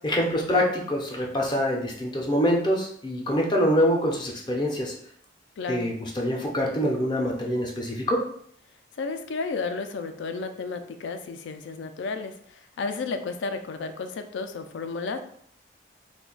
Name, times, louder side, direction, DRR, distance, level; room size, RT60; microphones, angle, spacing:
voice 1, 0.0-4.9 5.7-8.2, equal, 25° left, -1 dB, 0.4 m, -25 dB
voice 2, 5.6-5.9 9.0-12.3 12.8-15.2, left 4 dB, 85° left, 8 dB, 0.4 m, -32 dB
2.4 x 2.2 x 3.7 m, 0.64 s
head